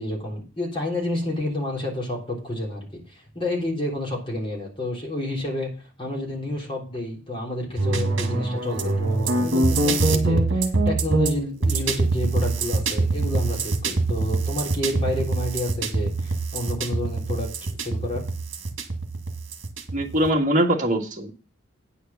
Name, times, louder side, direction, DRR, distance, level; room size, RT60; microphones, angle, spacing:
voice 1, 0.0-5.7 6.0-18.2, left 1 dB, 25° left, -2 dB, 3.3 m, -30 dB
sound 1, 7.8-20.3, right 3 dB, 65° right, 1.6 m, -24 dB
voice 2, 19.9-21.3, right 1 dB, 40° right, 1 dB, 1.7 m, -22 dB
9.4 x 5.0 x 7.0 m, 0.35 s
head